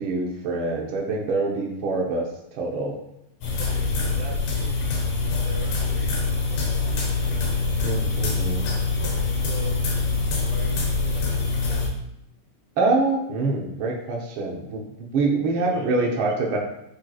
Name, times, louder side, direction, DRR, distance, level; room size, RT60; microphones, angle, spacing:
voice 1, 0.0-3.0 7.8-8.7 12.8-14.8 15.1-16.6, right 3 dB, 80° right, -1 dB, 1.1 m, -25 dB
sound 1, 3.4-11.9, left 3 dB, 75° left, 2.6 m, -24 dB
voice 2, 3.5-4.9 5.4-6.6 6.9-7.9 9.0-9.9 10.5-11.9 15.4-16.6, right 2 dB, 40° right, -5 dB, 2.5 m, -42 dB
10.0 x 4.4 x 2.4 m, 0.79 s
omnidirectional pair, 3.6 m